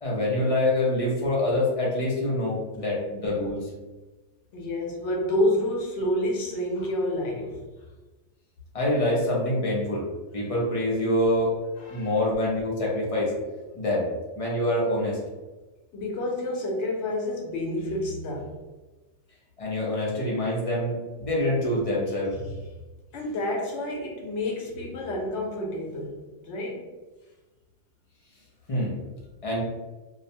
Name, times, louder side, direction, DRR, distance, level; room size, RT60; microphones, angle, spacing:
voice 1, 0.0-3.6 8.7-10.1 10.3-11.5 11.9-13.3 13.7-14.1 14.4-15.2 19.6-22.3 28.7-28.9 29.4-29.6, left 1 dB, 40° left, -4 dB, 0.6 m, -25 dB
voice 2, 4.5-7.6 11.8-12.2 15.9-18.5 23.1-26.2 26.4-26.8, left 1 dB, 85° left, -1 dB, 1.0 m, -29 dB
2.4 x 2.1 x 2.7 m, 1.2 s
omnidirectional pair, 1.2 m